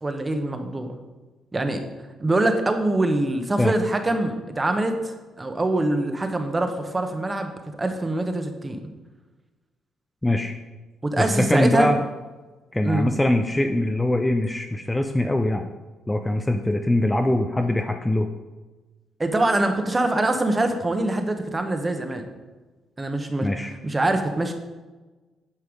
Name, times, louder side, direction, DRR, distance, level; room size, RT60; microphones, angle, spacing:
voice 1, 0.0-0.9 1.5-1.8 2.2-7.5 7.8-8.8 11.0-11.9 12.8-13.1 19.2-22.2 23.0-23.5 23.8-24.5, right 2 dB, 20° right, 6 dB, 1.1 m, -24 dB
voice 2, 10.2-10.5 11.2-12.0 12.7-15.7 16.1-18.3 23.4-23.7, left 1 dB, 10° left, 5 dB, 0.6 m, -22 dB
9.8 x 5.5 x 5.2 m, 1.2 s
cardioid pair, 90°, 0 cm